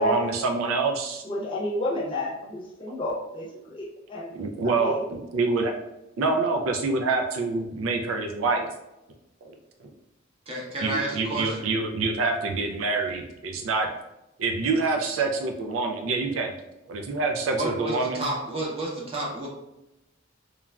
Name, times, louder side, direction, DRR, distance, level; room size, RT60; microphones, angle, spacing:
voice 1, 0.0-1.2 2.9-3.0 4.3-5.7 6.2-8.7 9.4-9.5 9.8-9.9 10.8-13.9 14.4-16.6 16.9-18.3, right 3 dB, 85° right, 4 dB, 0.4 m, -26 dB
voice 2, 1.2-4.3 4.8-5.0, left 1 dB, 25° left, -4 dB, 0.7 m, -31 dB
voice 3, 10.5-11.7 17.5-19.5, right 2 dB, 30° right, -4 dB, 0.7 m, -31 dB
3.1 x 2.4 x 2.2 m, 0.93 s
head